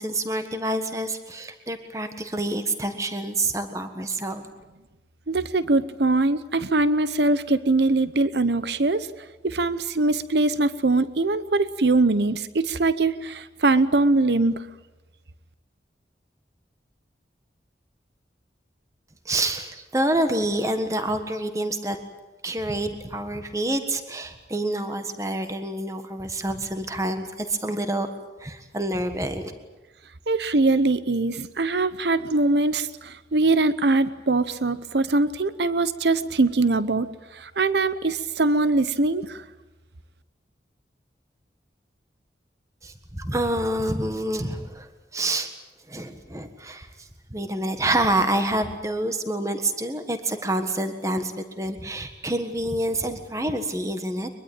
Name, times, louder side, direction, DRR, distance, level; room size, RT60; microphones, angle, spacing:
voice 1, 0.0-4.5 19.2-22.0 22.4-28.1 28.4-29.5 42.8-45.5 45.9-54.3, right 1 dB, 20° right, 7 dB, 1.5 m, -27 dB
voice 2, 5.3-9.1 9.4-14.6 30.3-37.1 37.3-39.4, right 2 dB, 75° right, 14 dB, 0.9 m, -22 dB
23.0 x 22.5 x 8.9 m, 1.1 s
head